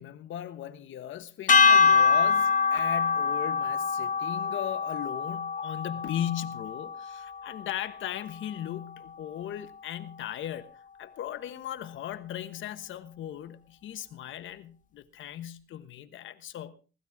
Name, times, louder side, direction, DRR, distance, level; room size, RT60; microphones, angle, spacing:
voice 1, 0.0-10.7 11.0-16.7, left 11 dB, 75° left, 1.3 m, -37 dB
sound 1, 1.5-7.8, left 5 dB, 40° left, 1.2 m, -24 dB
21.0 x 12.5 x 3.6 m
cardioid pair, 90°, 20 cm